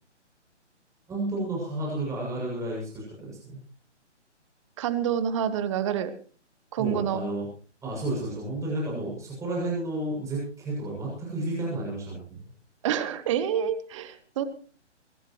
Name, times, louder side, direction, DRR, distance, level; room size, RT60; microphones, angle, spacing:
voice 1, 1.1-3.6 6.8-7.5 7.8-12.4, right 1 dB, 10° right, -4 dB, 7.3 m, -31 dB
voice 2, 4.8-6.1 6.7-7.2 12.8-14.4, right 9 dB, 25° right, 12 dB, 1.3 m, -27 dB
24.0 x 15.5 x 3.2 m, 0.41 s
figure-of-eight pair, 140°, 36 cm